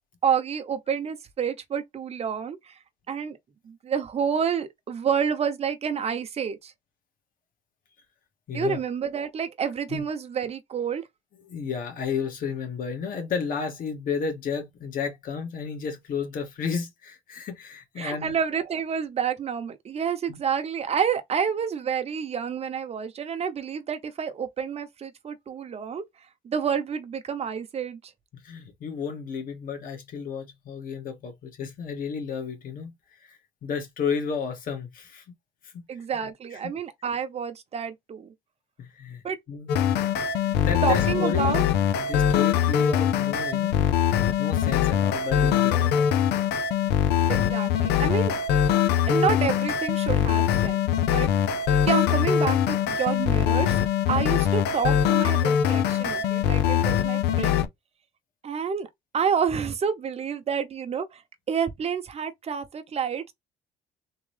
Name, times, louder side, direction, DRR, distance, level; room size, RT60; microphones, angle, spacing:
voice 1, 0.2-2.8 3.1-3.4 3.6-6.7 8.5-11.0 18.0-26.0 26.4-28.0 35.9-38.3 39.2-39.4 40.5-41.6 47.3-48.4 49.0-50.8 51.1-51.3 51.9-53.8 54.1-57.7 58.4-58.9 59.1-61.2 61.5-63.3, right 7 dB, 40° right, 0.9 m, -29 dB
voice 2, 8.5-8.8 9.9-10.0 11.4-18.4 20.3-20.4 28.3-35.2 35.6-35.7 36.5-36.6 38.8-40.1 40.6-43.8 44.4-46.1, left 6 dB, 55° left, 1.7 m, -32 dB
sound 1, 39.7-57.7, left 9 dB, 80° left, 0.6 m, -23 dB
3.7 x 3.1 x 3.4 m
cardioid pair, 110°, 17 cm